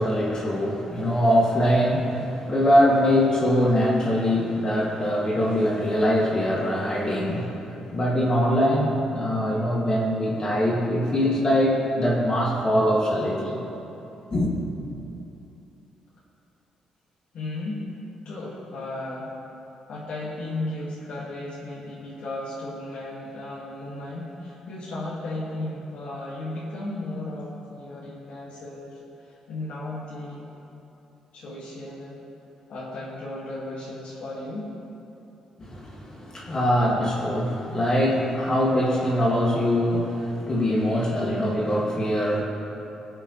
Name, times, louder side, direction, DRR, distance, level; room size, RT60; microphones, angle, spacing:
voice 1, 0.0-13.6 14.3-14.5 35.6-42.4, equal, 35° left, -4 dB, 2.3 m, -23 dB
voice 2, 17.3-17.8 18.2-19.3 19.9-30.5 31.3-32.2 32.7-34.7, left 2 dB, 75° left, -7 dB, 2.0 m, -35 dB
20.0 x 7.7 x 3.3 m, 2.9 s
cardioid pair, 90°, 2 cm